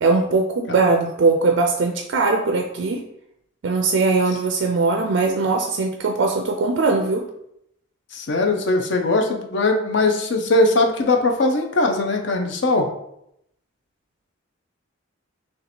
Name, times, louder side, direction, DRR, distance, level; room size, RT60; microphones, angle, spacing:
voice 1, 0.0-3.0 3.6-7.2, right 3 dB, 60° right, 3 dB, 0.4 m, -20 dB
voice 2, 8.1-12.9, left 2 dB, 55° left, 3 dB, 0.5 m, -20 dB
3.1 x 2.8 x 4.1 m, 0.77 s
head